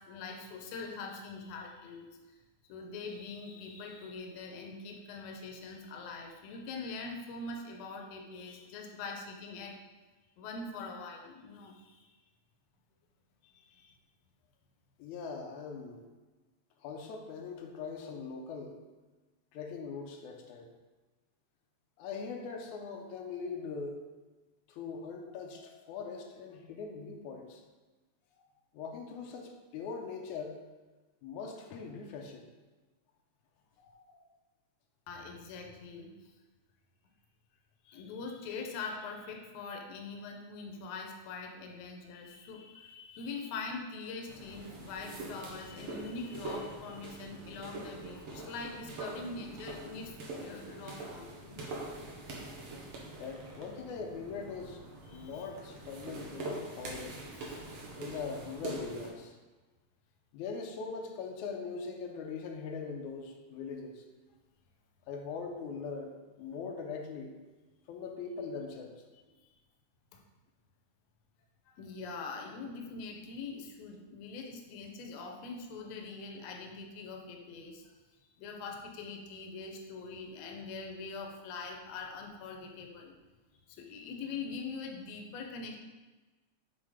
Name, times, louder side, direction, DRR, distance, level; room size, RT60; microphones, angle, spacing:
voice 1, 0.0-2.1 2.7-9.8 10.4-12.2 13.4-13.9 35.1-36.3 37.8-51.8 55.1-55.5 57.5-57.6 69.4-69.5 70.1-70.2 71.7-77.9 78.4-83.1 83.7-85.8, left 4 dB, 75° left, 2 dB, 1.9 m, -43 dB
voice 2, 15.0-16.1 16.8-18.7 19.5-20.7 22.0-24.0 24.7-27.6 28.4-28.5 28.7-30.6 31.2-32.5 33.8-34.3 53.2-54.8 55.1-57.2 58.0-59.4 60.3-64.0 65.1-66.1 66.4-67.3 67.9-69.0, left 5 dB, 90° left, 2 dB, 2.2 m, -41 dB
sound 1, 44.3-59.1, right 2 dB, 55° right, 1.8 m, -44 dB
7.5 x 4.0 x 4.9 m, 1.2 s
omnidirectional pair, 3.4 m